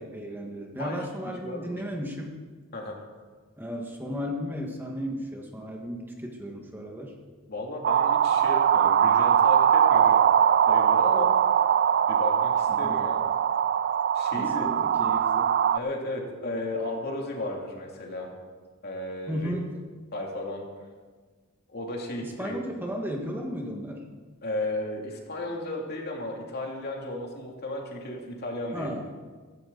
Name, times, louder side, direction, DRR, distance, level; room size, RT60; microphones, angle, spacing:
voice 1, 0.0-2.3 3.6-7.1 12.7-13.0 14.3-15.5 19.3-19.7 22.2-24.0 28.7-29.1, equal, 10° right, 0 dB, 1.6 m, -34 dB
voice 2, 1.4-1.7 2.7-3.0 7.5-10.2 10.7-11.3 12.1-13.2 14.1-14.7 15.7-18.3 18.8-19.5 20.1-20.7 21.7-22.5 24.4-28.9, left 1 dB, 50° left, 0 dB, 2.7 m, -34 dB
sound 1, 7.8-15.8, right 8 dB, 50° right, 0.4 m, -21 dB
16.0 x 15.5 x 4.0 m, 1.4 s
head